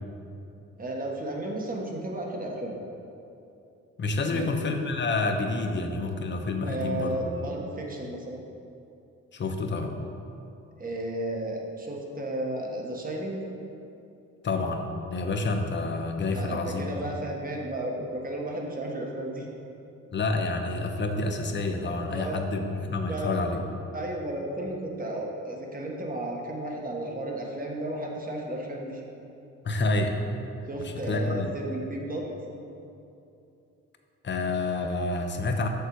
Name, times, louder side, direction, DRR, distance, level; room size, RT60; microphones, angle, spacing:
voice 1, 0.8-2.7 4.2-4.5 6.6-8.4 10.8-13.4 16.3-19.5 22.1-22.4 23.0-23.4 23.9-29.0 30.7-32.3, right 1 dB, 30° right, 0 dB, 1.4 m, -33 dB
voice 2, 4.0-7.5 9.3-9.9 14.4-17.1 20.1-23.6 29.6-30.2 30.8-31.5 34.2-35.7, left 3 dB, 40° left, 5 dB, 0.8 m, -28 dB
6.7 x 6.7 x 4.7 m, 2.7 s
cardioid pair, 90°, 30 cm